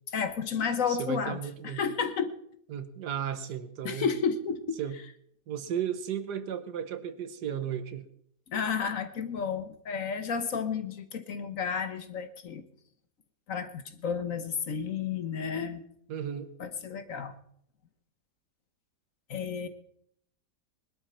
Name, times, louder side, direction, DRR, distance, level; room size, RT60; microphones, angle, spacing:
voice 1, 0.1-2.3 3.8-4.8 8.5-12.6 13.5-15.8 16.6-17.3 19.3-19.7, left 6 dB, 55° left, 10 dB, 1.3 m, -32 dB
voice 2, 0.9-1.8 2.7-4.1 4.8-5.0 5.5-8.1 16.1-16.5, right 9 dB, 75° right, 12 dB, 1.6 m, -34 dB
20.5 x 11.5 x 4.4 m, 0.68 s
omnidirectional pair, 1.8 m